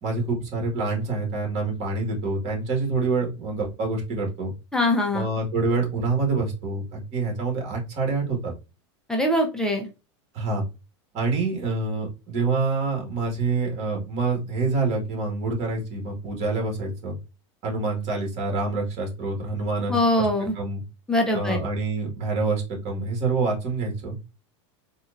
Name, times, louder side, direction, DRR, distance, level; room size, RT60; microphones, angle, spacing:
voice 1, 0.0-4.5 5.1-8.5 10.3-10.6 11.1-17.2 17.6-20.3 20.6-20.8 21.3-24.2, right 3 dB, 45° right, 0 dB, 2.0 m, -26 dB
voice 2, 4.7-5.3 9.1-9.9 19.9-20.5 21.1-21.6, left 1 dB, 5° left, 1 dB, 0.7 m, -22 dB
4.1 x 2.6 x 2.6 m, 0.29 s
supercardioid pair, 125°, 16 cm